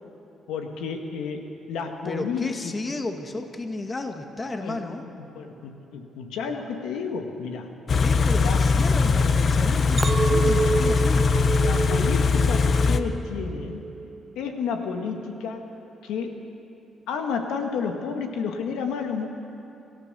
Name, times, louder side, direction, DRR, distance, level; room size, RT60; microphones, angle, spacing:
voice 1, 0.5-2.8 4.6-4.8 5.3-7.8 8.4-8.6 11.6-13.8 14.3-15.6 16.0-16.4 17.1-19.3, left 5 dB, 90° left, 4 dB, 1.7 m, -31 dB
voice 2, 2.0-5.0 8.0-11.3, left 2 dB, 25° left, 5 dB, 1.6 m, -33 dB
Car / Idling, 7.9-13.0, left 4 dB, 50° left, 0.9 m, -21 dB
Chink clink, 10.0-14.3 14.8-15.2, right 4 dB, 35° right, 0.4 m, -29 dB
28.5 x 14.0 x 6.8 m, 2.9 s
cardioid pair, 90°, 0 cm